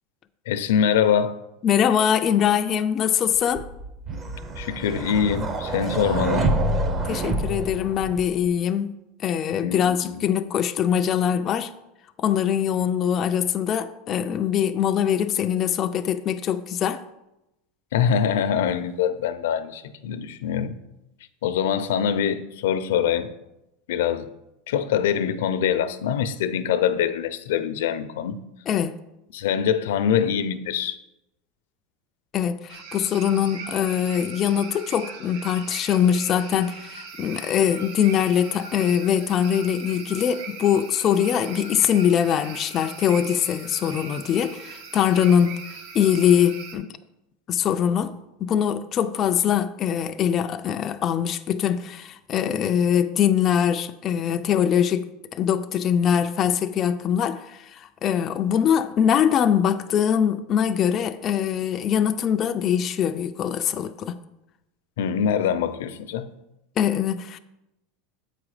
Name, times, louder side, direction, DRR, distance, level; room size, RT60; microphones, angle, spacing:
voice 1, 0.5-1.4 4.6-6.5 9.6-10.2 17.9-20.7 21.4-23.3 23.9-24.3 24.7-28.4 29.3-31.0 65.0-66.2, left 8 dB, 85° left, 0.6 m, -24 dB
voice 2, 1.6-3.7 7.0-9.0 9.2-11.7 12.2-17.0 28.7-28.9 32.3-45.6 45.9-46.9 47.5-64.2 66.8-67.4, left 9 dB, 25° left, 0.3 m, -22 dB
sound 1, 3.6-8.5, right 2 dB, 20° right, 0.6 m, -27 dB
sound 2, 32.7-46.8, right 5 dB, 80° right, 1.3 m, -40 dB
7.7 x 4.9 x 4.8 m
supercardioid pair, 165°, 0 cm